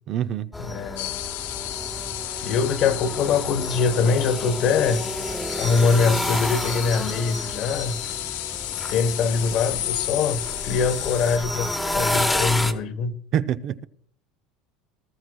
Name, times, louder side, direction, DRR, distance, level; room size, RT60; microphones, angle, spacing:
voice 1, 0.1-0.5 13.3-13.8, right 10 dB, 45° right, 0.5 m, -25 dB
sound 1, 0.5-12.7, left 1 dB, 10° left, 1.0 m, -30 dB
voice 2, 0.6-1.2 2.4-5.0 5.6-8.0 8.9-13.1, left 5 dB, 50° left, 1.0 m, -23 dB
sound 2, 1.0-11.4, left 16 dB, 85° left, 0.4 m, -32 dB
19.0 x 13.0 x 2.3 m
supercardioid pair, 120°, 0 cm